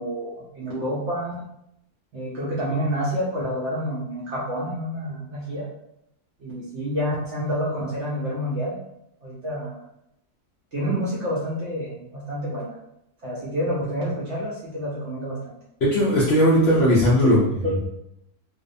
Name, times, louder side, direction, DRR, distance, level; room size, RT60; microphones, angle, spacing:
voice 1, 0.0-1.4 2.1-5.7 6.4-8.8 9.2-9.8 10.7-12.7 13.2-15.6 17.2-17.4, equal, 60° right, -6 dB, 0.8 m, -28 dB
voice 2, 15.8-17.9, equal, 65° left, -7 dB, 0.6 m, -18 dB
2.6 x 2.1 x 2.5 m, 0.80 s
omnidirectional pair, 1.7 m